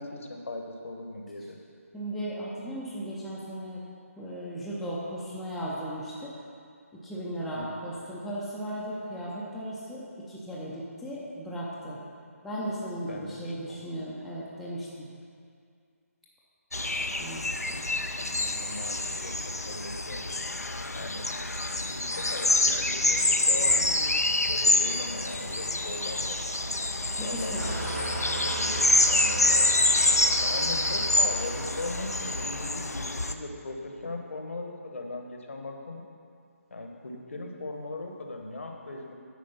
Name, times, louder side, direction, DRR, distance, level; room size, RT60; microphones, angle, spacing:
voice 1, 0.0-1.6 7.5-7.6 13.0-13.8 18.2-20.7 20.9-21.4 21.7-23.2 23.5-26.4 27.2-27.5 27.8-29.7 30.4-36.0 36.7-39.1, left 2 dB, 55° left, 2 dB, 1.1 m, -39 dB
voice 2, 1.9-3.8 4.2-6.3 6.9-12.0 12.4-15.1 17.2-17.8 27.0-27.8, right 1 dB, ahead, -9 dB, 0.6 m, -36 dB
sound 1, 16.7-33.3, left 2 dB, 85° left, 0.6 m, -26 dB
Engine starting / Idling, 27.6-33.0, right 1 dB, 80° right, 2.3 m, -37 dB
9.2 x 5.0 x 5.7 m, 2.3 s
figure-of-eight pair, 150°, 8 cm